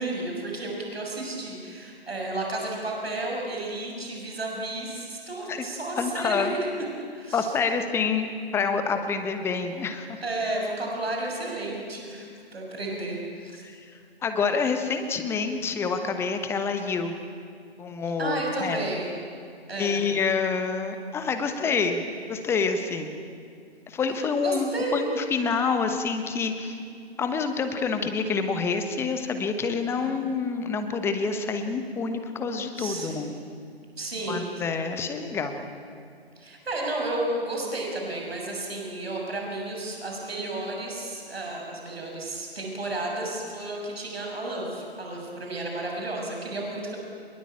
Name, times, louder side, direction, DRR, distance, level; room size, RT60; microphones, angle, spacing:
voice 1, 0.0-6.7 7.1-7.5 10.2-13.6 18.2-19.1 19.7-20.0 24.4-25.1 30.0-30.2 32.7-33.3 34.0-34.5 36.4-47.0, right 2 dB, 70° right, 0 dB, 6.9 m, -32 dB
voice 2, 6.0-6.5 7.3-8.3 8.5-10.2 13.6-13.8 14.2-17.2 17.8-18.8 19.8-23.2 23.9-26.8 27.2-33.3 34.3-35.6, left 5 dB, 10° left, 7 dB, 1.2 m, -27 dB
25.5 x 21.5 x 8.8 m, 2.3 s
figure-of-eight pair, 135°, 32 cm